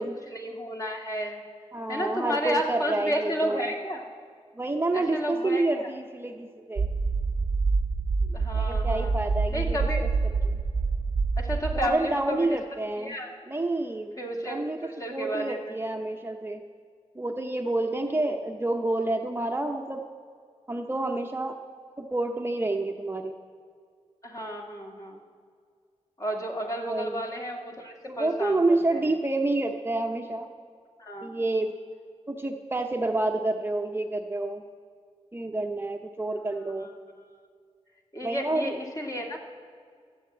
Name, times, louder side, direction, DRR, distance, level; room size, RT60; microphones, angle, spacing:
voice 1, 0.3-1.4 1.9-4.1 4.9-5.9 8.3-9.1 9.5-10.1 11.4-12.6 13.0-13.3 14.2-15.7 18.0-18.2 24.2-25.2 26.2-29.1 31.0-31.3 36.6-36.9 38.1-39.4, equal, 30° left, 0 dB, 2.1 m, -32 dB
voice 2, 1.7-3.7 4.6-6.9 8.6-9.8 10.5-10.6 11.7-13.2 13.5-14.2 14.4-16.6 17.1-20.1 20.7-21.6 22.0-23.4 26.9-27.2 28.1-30.5 31.2-31.7 32.3-34.6 35.3-36.9 38.2-38.8, right 2 dB, 20° right, 3 dB, 0.8 m, -28 dB
sound 1, 6.8-11.9, right 4 dB, 50° right, 0.8 m, -26 dB
14.5 x 8.6 x 7.9 m, 2.1 s
wide cardioid pair, 75°, 12 cm